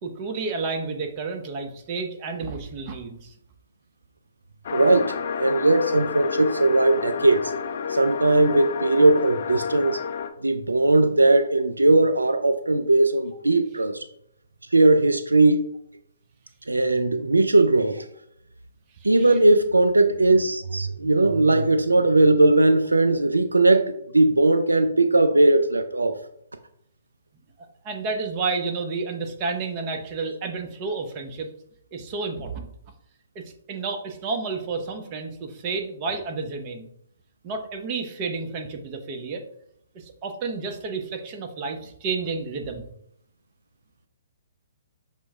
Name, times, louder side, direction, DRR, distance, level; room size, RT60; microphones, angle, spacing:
voice 1, 0.0-3.3 19.0-19.4 27.6-31.5 31.9-32.7 33.3-36.9 37.4-39.4 39.9-42.9, right 4 dB, 35° right, 4 dB, 0.7 m, -31 dB
sound 1, 4.6-10.3, left 6 dB, 55° left, 0.4 m, -30 dB
voice 2, 4.7-5.1 5.4-7.5 7.9-10.0 10.4-14.0 14.7-15.7 16.7-18.0 19.0-26.2, right 2 dB, 90° right, 9 dB, 0.3 m, -19 dB
6.0 x 2.1 x 3.5 m, 0.72 s
figure-of-eight pair, 130°, 0 cm